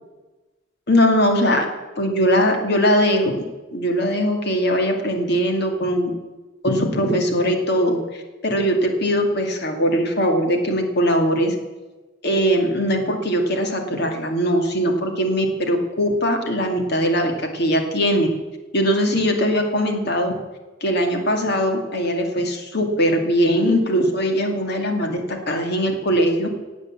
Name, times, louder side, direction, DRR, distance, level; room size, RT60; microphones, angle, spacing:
voice 1, 0.9-1.7 2.0-3.4 3.7-6.1 6.6-11.5 12.2-18.3 18.7-20.3 20.8-26.5, equal, 55° left, 4 dB, 2.3 m, -20 dB
17.5 x 8.4 x 7.4 m, 1.2 s
head